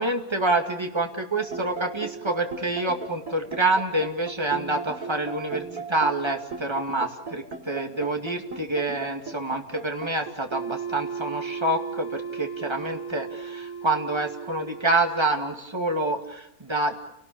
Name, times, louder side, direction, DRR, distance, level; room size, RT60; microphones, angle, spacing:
voice 1, 0.0-16.9, right 2 dB, 20° right, 3 dB, 2.4 m, -27 dB
sound 1, 1.4-15.3, right 5 dB, 75° right, 3.4 m, -36 dB
30.0 x 19.0 x 8.7 m, 0.83 s
omnidirectional pair, 1.5 m